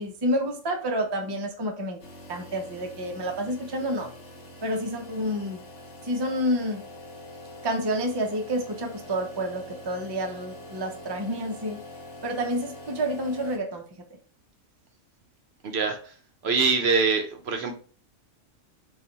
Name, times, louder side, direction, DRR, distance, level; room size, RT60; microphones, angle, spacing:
voice 1, 0.0-2.0 2.3-4.1 4.6-5.6 6.0-6.8 7.6-11.8 12.2-13.9, equal, 35° right, 3 dB, 0.4 m, -29 dB
sound 1, 2.0-13.6, left 1 dB, 60° left, 1.2 m, -44 dB
voice 2, 15.6-16.1 16.4-17.7, right 4 dB, 60° right, 4 dB, 0.8 m, -24 dB
4.0 x 2.4 x 4.0 m, 0.41 s
omnidirectional pair, 1.4 m